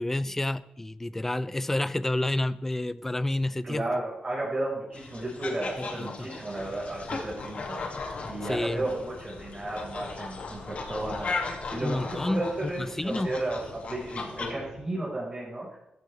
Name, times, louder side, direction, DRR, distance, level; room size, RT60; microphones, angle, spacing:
voice 1, 0.0-4.0 5.9-6.3 8.5-8.8 11.8-13.3, left 1 dB, 10° left, 16 dB, 0.4 m, -29 dB
voice 2, 3.6-7.8 8.3-15.8, right 1 dB, 30° right, -4 dB, 4.8 m, -33 dB
sound 1, 4.9-14.5, left 3 dB, 55° left, 2.2 m, -37 dB
sound 2, 6.5-14.8, left 4 dB, 85° left, 2.6 m, -47 dB
16.5 x 15.0 x 3.3 m, 0.85 s
wide cardioid pair, 140°, 3 cm